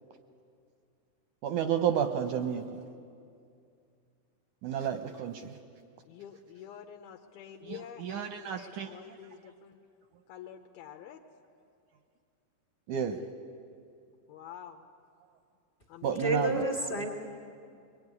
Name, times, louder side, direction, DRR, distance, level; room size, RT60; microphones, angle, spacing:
voice 1, 1.4-2.8 4.6-5.6 7.7-8.9 12.9-13.3 16.0-16.7, right 8 dB, 75° right, 7 dB, 1.8 m, -31 dB
voice 2, 6.0-9.8 10.3-11.3 14.3-14.9 15.9-16.3, left 9 dB, 80° left, 4 dB, 2.7 m, -48 dB
voice 3, 16.2-17.1, right 1 dB, 40° left, 4 dB, 1.5 m, -29 dB
23.5 x 22.5 x 9.6 m, 2.4 s
omnidirectional pair, 4.6 m